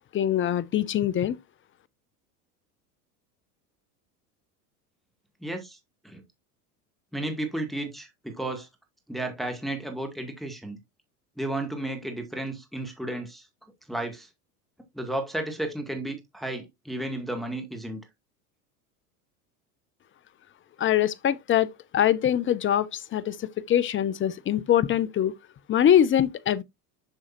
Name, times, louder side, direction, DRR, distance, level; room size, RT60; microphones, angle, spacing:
voice 1, 0.1-1.4 20.8-21.7 21.9-25.3 25.7-26.6, left 10 dB, 25° left, 0.7 m, -23 dB
voice 2, 5.4-5.8 6.0-6.2 7.1-8.7 9.1-10.8 11.4-13.5 13.9-14.3 14.9-18.0, right 1 dB, ahead, 1.9 m, -33 dB
7.4 x 6.3 x 2.5 m
hypercardioid pair, 85°, 46 cm